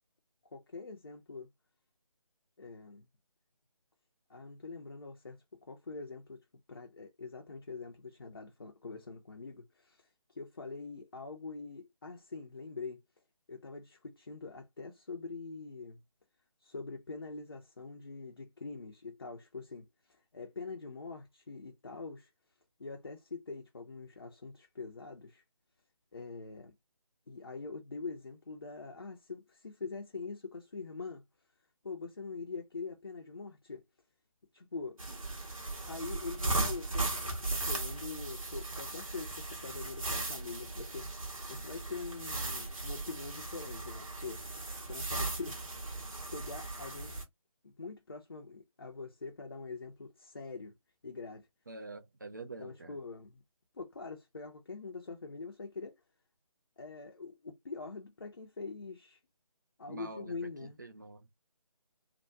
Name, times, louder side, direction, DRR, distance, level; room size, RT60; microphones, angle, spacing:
voice 1, 0.5-1.5 2.6-3.1 4.3-6.4 6.7-13.0 13.5-16.0 16.6-22.3 22.8-25.4 26.1-26.7 27.3-31.2 31.8-33.8 34.5-35.1 35.9-44.4 44.9-47.1 47.6-50.7 51.0-51.5 52.6-53.4 53.7-56.0 56.8-59.2 59.8-60.8, left 4 dB, 40° left, 0.6 m, -44 dB
sound 1, 35.0-47.2, right 2 dB, 65° right, 1.4 m, -37 dB
voice 2, 51.7-53.0 59.9-61.3, right 3 dB, 35° right, 0.5 m, -46 dB
3.4 x 2.1 x 2.7 m
figure-of-eight pair, 155°, 18 cm